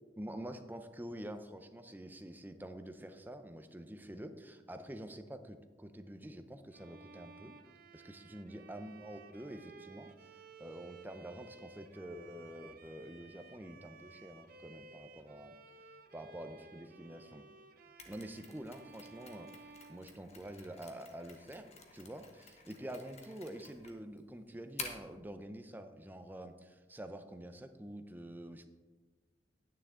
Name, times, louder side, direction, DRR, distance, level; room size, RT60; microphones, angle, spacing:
voice 1, 0.2-7.5 7.9-10.1 10.6-15.6 16.1-17.4 18.1-28.7, right 1 dB, 10° right, 8 dB, 0.5 m, -47 dB
Bowed string instrument, 6.7-20.8, right 4 dB, 50° right, 0.6 m, -57 dB
Mechanisms, 18.0-25.2, left 4 dB, 35° left, 1.1 m, -51 dB
10.0 x 9.0 x 3.7 m, 1.3 s
head